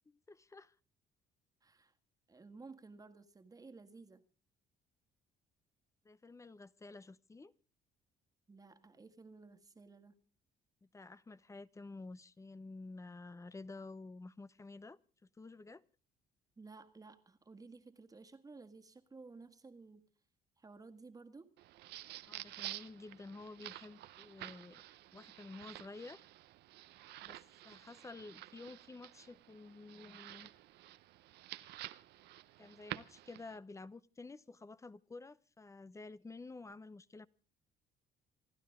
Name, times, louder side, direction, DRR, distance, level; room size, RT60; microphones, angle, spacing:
voice 1, 0.1-0.7 6.0-7.5 10.9-15.0 15.3-15.8 22.3-24.8 25.1-26.2 27.2-27.4 27.6-30.5 32.6-37.3, left 3 dB, 20° left, 0.7 m, -51 dB
voice 2, 1.6-1.9 2.3-4.2 8.5-10.2 16.6-20.1 20.6-21.5, right 3 dB, 20° right, 1.7 m, -55 dB
sound 1, 21.6-33.6, right 15 dB, 75° right, 0.8 m, -50 dB
28.0 x 12.0 x 3.6 m
cardioid pair, 110°, 17 cm